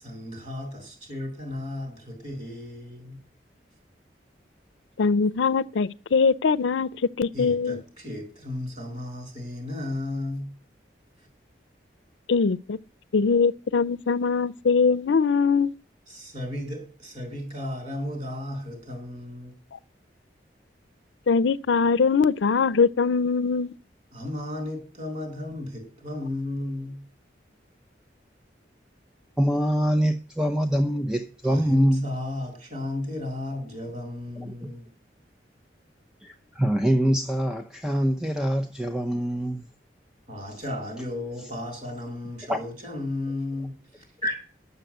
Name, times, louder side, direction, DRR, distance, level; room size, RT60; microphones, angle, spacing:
voice 1, 0.0-3.2 7.3-10.5 11.2-11.3 16.1-19.5 24.1-27.0 31.4-34.9 40.3-44.4, left 1 dB, 40° right, 5.7 m, -34 dB
voice 2, 5.0-6.9 7.2-7.8 12.3-12.8 13.1-15.7 21.3-23.7, left 5 dB, 90° left, 0.5 m, -22 dB
voice 3, 29.4-32.1 34.6-34.7 36.2-39.7 42.5-42.6, equal, 5° right, 0.6 m, -24 dB
10.5 x 6.9 x 8.0 m
head